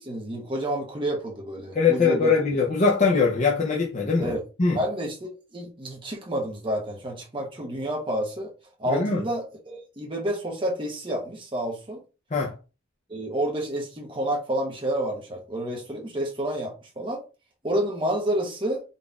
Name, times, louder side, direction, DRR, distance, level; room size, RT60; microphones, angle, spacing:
voice 1, 0.0-2.3 4.2-4.4 4.7-8.5 8.8-12.0 13.1-17.2 17.6-18.8, right 1 dB, 25° right, 0.8 m, -29 dB
voice 2, 1.7-4.3 4.6-4.8 8.9-9.2 12.3-12.5, left 4 dB, 35° left, 0.6 m, -22 dB
4.0 x 2.5 x 3.4 m
head